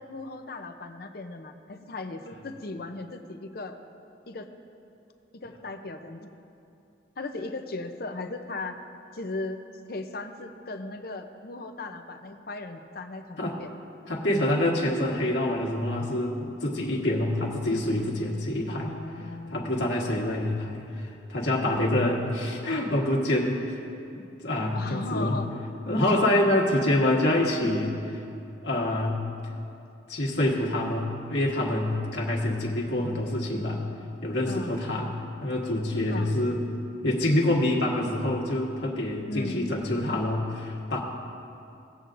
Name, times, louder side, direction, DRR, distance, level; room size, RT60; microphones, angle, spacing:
voice 1, 0.0-3.8 4.3-4.5 5.3-6.3 7.2-8.8 9.1-9.6 9.9-13.7 18.7-20.0 24.7-25.5 34.5-34.8 36.1-36.4 39.3-39.7, left 2 dB, 55° left, 6 dB, 0.6 m, -37 dB
voice 2, 14.1-18.9 19.5-23.8 24.1-25.4 25.9-28.2 28.6-29.2 30.1-33.8 34.2-35.1 35.4-36.6 37.0-41.0, left 1 dB, 70° left, -2 dB, 1.5 m, -26 dB
18.0 x 8.0 x 2.6 m, 2.7 s
head